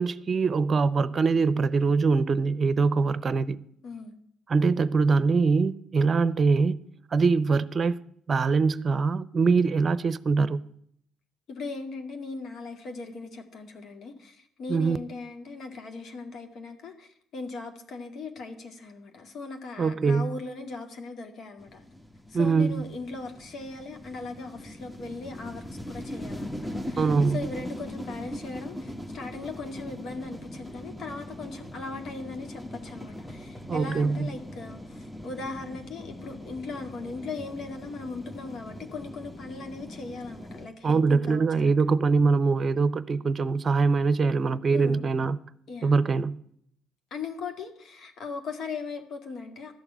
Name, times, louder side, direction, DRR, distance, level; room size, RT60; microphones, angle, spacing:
voice 1, 0.0-3.6 4.5-6.8 7.1-8.0 8.3-10.6 14.7-15.0 19.8-20.3 22.3-22.8 27.0-27.4 33.7-34.3 40.8-45.4 45.8-46.4, right 4 dB, 40° right, 0.7 m, -23 dB
voice 2, 3.8-4.1 11.5-21.8 22.3-41.8 44.7-45.1 45.7-45.9 47.1-49.7, left 3 dB, 55° left, 2.1 m, -39 dB
sound 1, 21.6-40.7, equal, 10° left, 1.4 m, -40 dB
12.5 x 7.0 x 10.0 m
hypercardioid pair, 50°, 0 cm